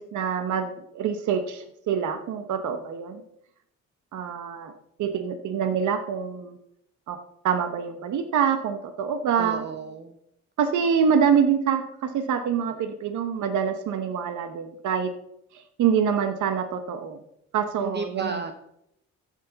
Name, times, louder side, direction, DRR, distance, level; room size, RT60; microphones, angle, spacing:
voice 1, 0.0-3.2 4.1-4.7 5.0-6.6 7.1-7.2 7.4-9.6 10.6-15.1 15.8-17.2 17.5-18.5, right 7 dB, 75° right, 7 dB, 1.0 m, -25 dB
voice 2, 9.4-10.1 17.8-18.5, right 5 dB, 35° right, 7 dB, 0.9 m, -33 dB
14.5 x 6.5 x 4.0 m, 0.77 s
cardioid pair, 90°, 30 cm